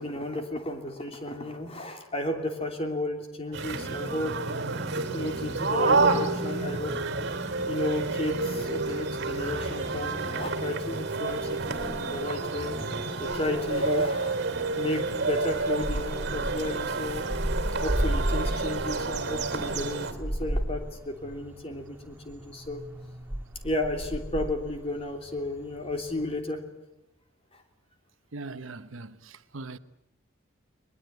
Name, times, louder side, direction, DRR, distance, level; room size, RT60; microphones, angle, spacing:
voice 1, 0.0-4.4 4.9-7.0 7.6-12.8 13.1-14.4 14.7-17.3 17.8-22.8 23.6-26.6, left 2 dB, 30° left, 3.1 m, -33 dB
sound 1, 3.5-20.1, right 3 dB, 55° right, 2.7 m, -29 dB
sound 2, 6.6-26.4, equal, 10° right, 2.9 m, -36 dB
voice 2, 28.3-29.8, right 3 dB, 75° right, 1.0 m, -40 dB
22.0 x 21.5 x 9.3 m
head